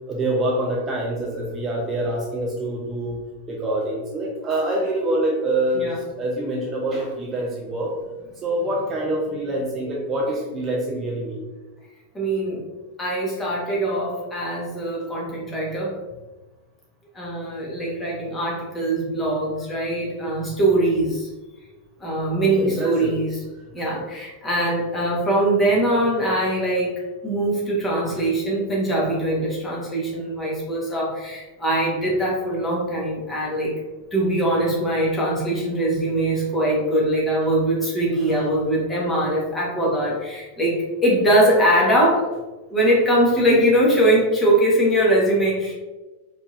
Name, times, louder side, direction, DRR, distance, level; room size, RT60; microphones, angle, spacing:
voice 1, 0.1-3.2 3.5-5.9 6.1-7.9 8.4-11.4 22.6-23.2 24.0-24.1, right 1 dB, 25° right, -2 dB, 0.6 m, -25 dB
voice 2, 12.1-12.6 13.0-16.0 17.1-21.3 22.0-23.4 23.7-26.9 27.2-33.7 34.1-42.3 42.7-45.7, right 1 dB, 15° left, -4 dB, 1.4 m, -22 dB
4.4 x 3.1 x 2.6 m, 1.2 s
figure-of-eight pair, 90°, 0 cm